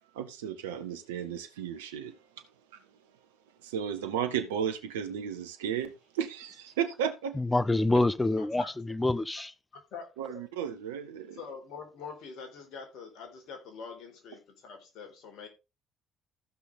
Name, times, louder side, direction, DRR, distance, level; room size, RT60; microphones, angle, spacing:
voice 1, 0.1-2.2 3.6-7.4 10.2-11.4, right 8 dB, 80° right, 1.3 m, -34 dB
voice 2, 7.4-9.5, left 2 dB, 15° left, 0.9 m, -26 dB
voice 3, 8.2-8.7 9.7-10.4 11.3-15.5, left 5 dB, 65° left, 4.1 m, -45 dB
15.0 x 6.1 x 3.6 m
hypercardioid pair, 55°, 0 cm